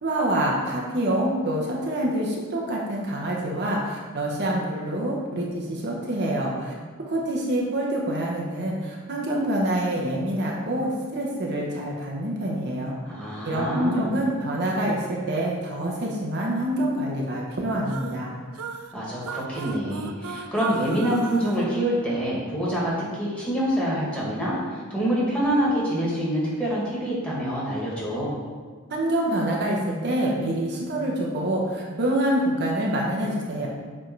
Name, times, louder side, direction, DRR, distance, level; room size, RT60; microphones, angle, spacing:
voice 1, 0.0-6.7 7.1-13.0 13.4-18.3 28.9-33.7, right 1 dB, 55° right, -2 dB, 1.0 m, -26 dB
voice 2, 13.1-14.2 18.9-28.3, equal, 5° left, -7 dB, 1.9 m, -26 dB
sound 1, 17.8-22.6, right 5 dB, 80° right, 0.4 m, -38 dB
7.6 x 3.6 x 4.6 m, 1.5 s
head